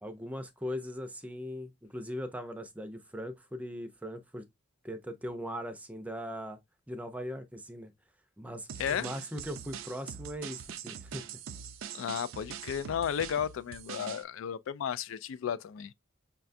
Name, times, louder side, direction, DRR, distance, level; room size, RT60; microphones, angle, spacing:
voice 1, 0.0-4.4 4.8-6.6 6.9-7.9 8.4-11.3, equal, 5° right, 0.5 m, -39 dB
sound 1, 8.7-14.2, right 8 dB, 85° right, 0.5 m, -43 dB
voice 2, 8.8-9.1 11.9-15.9, left 8 dB, 80° left, 0.3 m, -33 dB
5.7 x 2.3 x 2.5 m
head